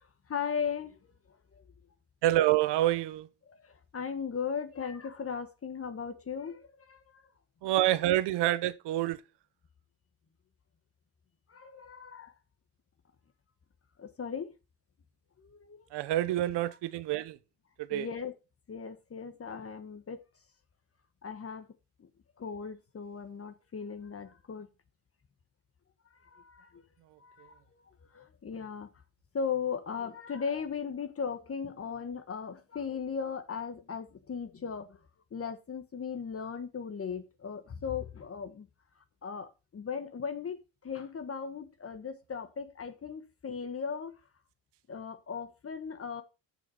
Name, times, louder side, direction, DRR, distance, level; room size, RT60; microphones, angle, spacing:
voice 1, 0.0-1.6 3.5-7.2 11.5-12.3 14.0-14.5 15.4-15.9 17.9-18.3 18.7-20.2 21.2-21.7 22.0-22.1 22.4-24.7 26.2-26.8 27.2-27.6 28.1-28.9 29.3-35.0 35.3-38.7 39.2-44.1 44.9-46.2, left 6 dB, 30° left, 1.4 m, -37 dB
voice 2, 2.2-3.3 7.6-9.2 15.9-17.4 17.8-18.1, right 14 dB, 70° right, 1.0 m, -27 dB
7.0 x 6.2 x 6.4 m
cardioid pair, 95°, 43 cm